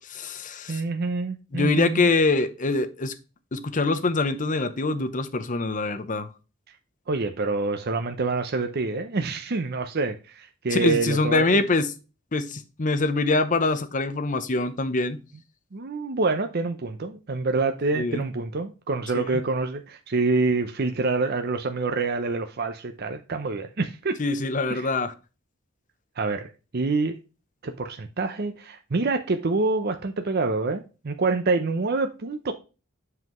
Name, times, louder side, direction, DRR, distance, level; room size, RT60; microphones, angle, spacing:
voice 1, 0.0-0.8 1.5-3.2 3.5-6.3 10.7-11.9 12.3-15.2 17.9-18.3 19.3-19.4 24.2-25.1, left 3 dB, 40° left, 0.8 m, -24 dB
voice 2, 0.7-2.1 7.1-11.6 15.7-24.2 24.7-24.9 26.2-27.2 27.6-32.5, right 3 dB, 50° right, 0.6 m, -26 dB
7.7 x 5.6 x 3.0 m
head